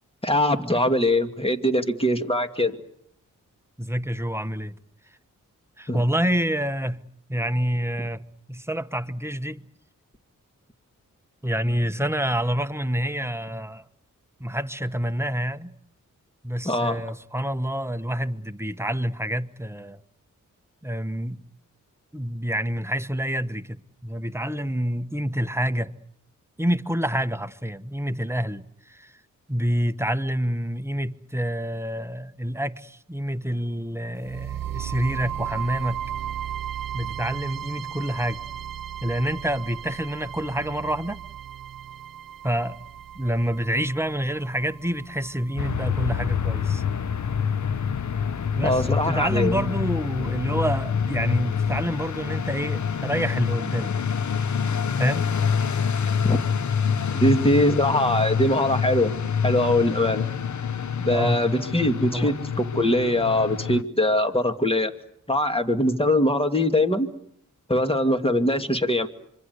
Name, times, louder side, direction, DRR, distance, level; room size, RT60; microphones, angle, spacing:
voice 1, 0.2-2.8 5.9-6.0 16.6-17.0 48.6-49.7 56.2-56.4 57.1-59.1 59.4-60.3 61.0-64.9 65.3-67.1 67.7-69.1, left 1 dB, 15° left, 2.4 m, -22 dB
voice 2, 3.8-4.8 5.8-7.0 7.3-8.2 8.5-9.6 11.4-13.8 14.4-15.7 16.4-20.0 20.8-21.4 22.1-25.9 26.6-29.2 29.5-36.0 36.9-38.5 39.0-41.2 42.4-42.8 43.1-46.8 48.5-53.9 55.0-55.3 61.1-61.4 62.1-62.3, equal, 10° right, 1.1 m, -27 dB
sound 1, 34.2-48.2, right 9 dB, 85° right, 1.0 m, -36 dB
sound 2, 45.6-63.8, left 6 dB, 60° left, 1.0 m, -26 dB
26.0 x 24.5 x 8.1 m
cardioid pair, 60°, 33 cm